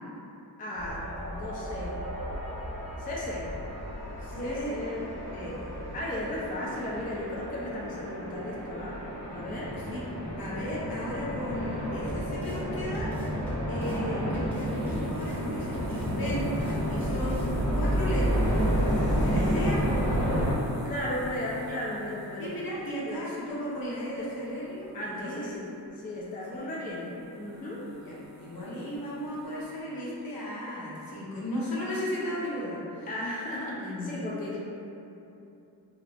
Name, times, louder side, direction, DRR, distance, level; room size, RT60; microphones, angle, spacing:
voice 1, 0.6-2.0 3.0-3.5 4.4-5.2 5.9-9.8 19.1-19.9 20.6-22.5 23.1-23.2 24.2-24.3 24.9-27.9 33.1-34.6, left 1 dB, 20° left, -5 dB, 0.4 m, -36 dB
sound 1, 0.8-20.5, equal, 80° left, 1.3 m, -31 dB
voice 2, 4.2-4.7 5.3-5.7 9.7-10.0 10.4-17.4 17.7-18.6 19.2-19.8 22.4-25.5 26.5-27.0 28.0-33.1 33.8-34.1, equal, 60° left, -6 dB, 0.8 m, -35 dB
sound 2, 12.1-12.6 12.9-14.0 14.3-15.4 15.7-16.8 17.1-17.5, equal, 5° left, 0.9 m, -40 dB
sound 3, 14.6-25.9 26.2-29.8, left 3 dB, 80° right, 0.6 m, -43 dB
2.4 x 2.1 x 3.2 m, 2.8 s
cardioid pair, 65°, 42 cm